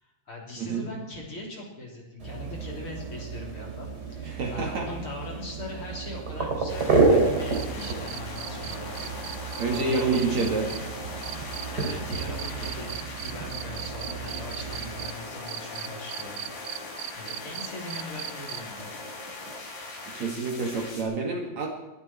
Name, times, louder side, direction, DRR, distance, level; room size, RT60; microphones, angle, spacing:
voice 1, 0.0-9.4 9.7-10.5 11.7-16.9 17.1-18.9, left 2 dB, 35° left, -1 dB, 4.1 m, -41 dB
sound 1, 2.2-15.1, right 3 dB, 30° right, 3.2 m, -30 dB
voice 2, 4.2-4.9 9.6-10.7 20.1-21.7, right 4 dB, 55° right, 2 dB, 3.2 m, -28 dB
sound 2, 6.7-21.0, left 2 dB, 65° left, 4.7 m, -40 dB
sound 3, 7.5-15.1 15.5-18.8 20.5-20.6, right 15 dB, 80° right, 2.1 m, -38 dB
21.5 x 12.0 x 4.5 m, 1.0 s
omnidirectional pair, 4.2 m